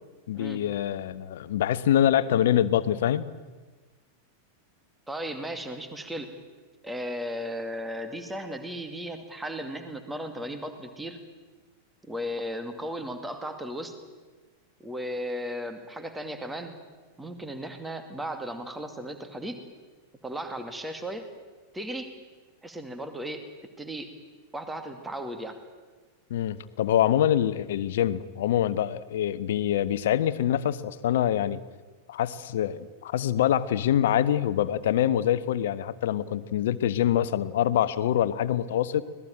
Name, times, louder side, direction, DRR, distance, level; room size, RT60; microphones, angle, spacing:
voice 1, 0.3-3.2 26.3-31.6 32.1-39.0, left 11 dB, 55° left, 15 dB, 1.1 m, -25 dB
voice 2, 5.1-6.3 6.8-11.2 12.1-13.9 14.8-16.8 17.2-19.6 20.2-21.3 21.7-22.1 22.6-23.4 23.8-24.1 24.5-25.6, equal, 10° right, 7 dB, 2.3 m, -35 dB
25.0 x 19.0 x 9.0 m, 1.3 s
figure-of-eight pair, 90°, 0 cm